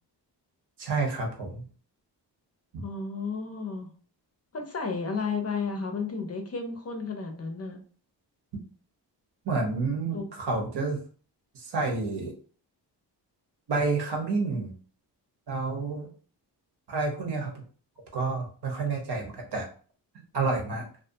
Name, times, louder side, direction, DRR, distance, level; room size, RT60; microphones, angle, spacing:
voice 1, 0.8-1.6 2.7-2.8 9.4-11.0 11.5-12.3 13.7-14.7 15.5-16.1 16.9-17.5 18.1-19.7 20.3-20.9, right 3 dB, 65° right, 1 dB, 0.9 m, -29 dB
voice 2, 2.8-3.9 4.5-7.8 10.1-10.3, left 4 dB, 35° left, 4 dB, 0.6 m, -33 dB
2.5 x 2.3 x 2.6 m, 0.41 s
cardioid pair, 80°, 43 cm